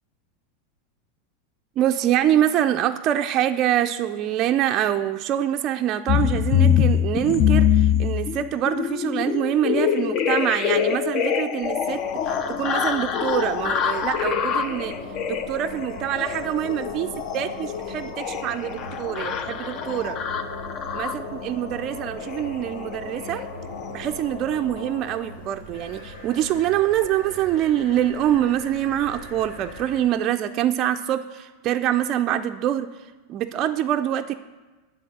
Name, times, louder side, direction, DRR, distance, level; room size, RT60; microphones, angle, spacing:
voice 1, 1.8-15.0 15.3-20.2 20.9-23.5 23.9-32.9 33.3-34.4, right 11 dB, 40° right, 6 dB, 0.3 m, -25 dB
sound 1, 6.1-21.4 22.2-22.5 22.7-22.9 23.2-23.4 23.7-23.9, left 8 dB, 40° left, 0.5 m, -24 dB
sound 2, 11.6-30.0, left 3 dB, 80° left, 1.8 m, -38 dB
9.1 x 4.0 x 7.2 m, 1.2 s
supercardioid pair, 130°, 0 cm